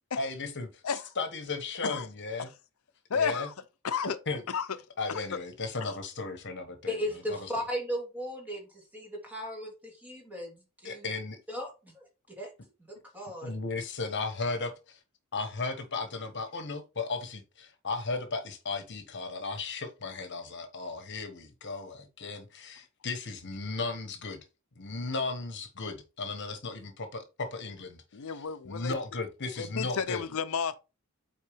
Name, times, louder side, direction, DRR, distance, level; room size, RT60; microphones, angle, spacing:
voice 1, 0.2-0.8 1.2-2.5 3.1-3.5 4.3-4.4 5.0-7.0 7.3-7.4 10.8-11.4 13.4-14.7 15.3-24.4 24.8-28.3 28.6-30.2, left 3 dB, 55° left, 1.3 m, -35 dB
voice 2, 3.1-3.5 3.8-4.2 4.5-4.7 5.1-5.4 28.1-28.9 29.6-30.8, left 6 dB, 70° left, 0.6 m, -32 dB
voice 3, 6.9-11.1 11.5-12.5 13.1-13.5, equal, 5° right, 2.5 m, -36 dB
8.3 x 4.5 x 3.5 m
head